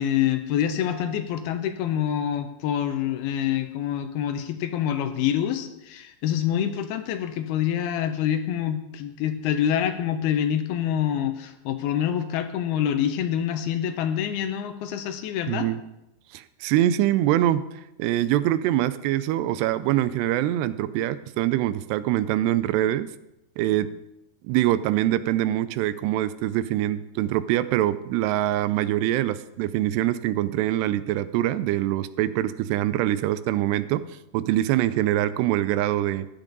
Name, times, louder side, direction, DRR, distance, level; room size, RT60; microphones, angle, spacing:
voice 1, 0.0-15.7, left 10 dB, 75° left, 8 dB, 2.6 m, -26 dB
voice 2, 15.5-15.8 16.3-17.7 18.0-23.1 23.6-23.9 24.4-34.1 34.3-36.3, right 13 dB, 85° right, 14 dB, 2.7 m, -24 dB
15.0 x 10.0 x 4.0 m, 0.89 s
omnidirectional pair, 4.8 m